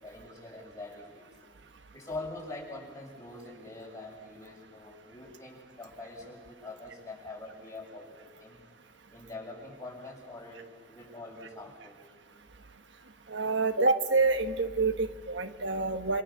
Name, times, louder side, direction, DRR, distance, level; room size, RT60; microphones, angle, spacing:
voice 1, 0.0-1.3 1.9-8.6 9.1-12.0, left 2 dB, 15° left, -1 dB, 7.2 m, -44 dB
voice 2, 13.3-16.2, right 3 dB, 75° right, 8 dB, 1.4 m, -27 dB
28.0 x 26.5 x 7.3 m, 1.5 s
head